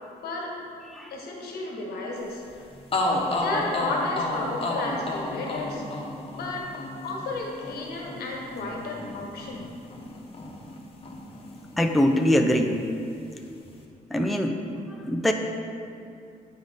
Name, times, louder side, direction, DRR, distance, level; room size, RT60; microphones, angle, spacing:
voice 1, 1.1-2.4 3.4-5.8 6.3-6.7 7.0-9.7, left 2 dB, 80° left, -1 dB, 1.4 m, -33 dB
sound 1, 2.5-2.6 2.9-10.8 11.0-12.2, left 2 dB, 35° left, 1.1 m, -31 dB
voice 2, 11.8-12.8 14.1-14.6 15.0-15.3, equal, ahead, 3 dB, 0.5 m, -22 dB
7.8 x 4.9 x 4.1 m, 2.5 s
cardioid pair, 85°, 16 cm